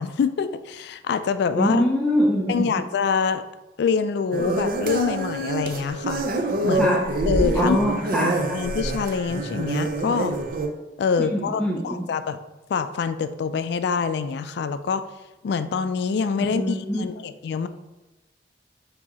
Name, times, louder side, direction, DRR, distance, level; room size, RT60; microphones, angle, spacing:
voice 1, 0.0-1.9 2.5-3.4 3.8-6.2 6.6-7.0 7.3-7.8 8.2-10.3 11.0-12.4 12.7-15.0 15.4-17.7, left 5 dB, 70° left, 11 dB, 0.3 m, -25 dB
voice 2, 1.5-2.8 6.7-7.1 7.5-8.6 11.3-12.1 16.5-17.0, equal, 5° left, -3 dB, 0.4 m, -24 dB
sound 1, 4.3-10.7, right 2 dB, 55° right, 0.5 m, -26 dB
4.7 x 2.7 x 4.1 m, 1.1 s
head